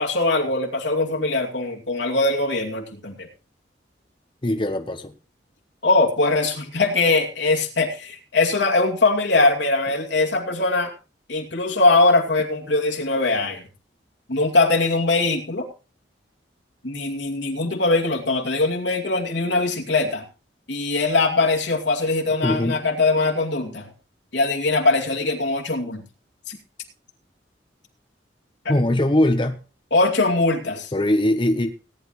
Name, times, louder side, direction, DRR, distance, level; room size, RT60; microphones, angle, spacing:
voice 1, 0.0-3.3 5.8-10.9 11.3-13.7 14.3-15.7 16.8-20.2 20.7-23.9 24.3-26.0 28.6-28.7 29.9-30.9, left 3 dB, 80° left, 2 dB, 2.5 m, -21 dB
voice 2, 4.4-5.1 22.4-22.8 28.7-29.6 30.9-31.7, left 1 dB, 25° left, 6 dB, 0.8 m, -21 dB
18.0 x 10.5 x 3.1 m, 0.33 s
head